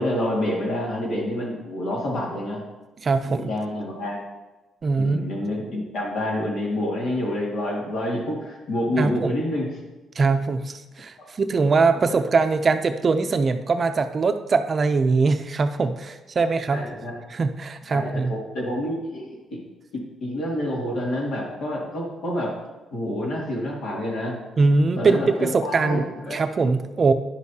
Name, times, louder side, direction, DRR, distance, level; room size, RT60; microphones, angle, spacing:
voice 1, 0.0-2.6 3.2-4.2 5.0-9.7 16.7-17.2 17.9-19.3 19.9-22.5 22.9-24.4 25.0-26.4, left 1 dB, 75° left, -3 dB, 2.3 m, -28 dB
voice 2, 3.0-3.5 4.8-5.2 9.0-9.3 10.2-16.9 17.3-18.3 24.6-26.0 26.3-27.1, right 4 dB, 40° right, 8 dB, 0.5 m, -22 dB
10.0 x 6.5 x 2.8 m, 1.1 s
cardioid pair, 90°, 0 cm